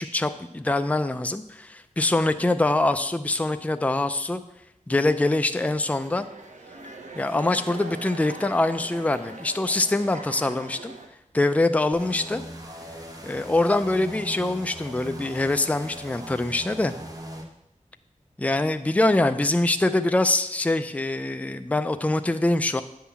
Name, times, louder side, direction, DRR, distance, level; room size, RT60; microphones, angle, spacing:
voice 1, 0.0-4.4 4.9-6.3 7.2-10.9 11.3-12.4 13.2-16.9 18.4-22.8, left 2 dB, 10° left, 9 dB, 0.4 m, -24 dB
sound 1, 5.8-11.1, right 2 dB, 65° right, 1.0 m, -41 dB
sound 2, 11.9-17.4, equal, 25° right, 1.2 m, -40 dB
9.5 x 3.8 x 7.1 m, 0.81 s
wide cardioid pair, 75°, 13 cm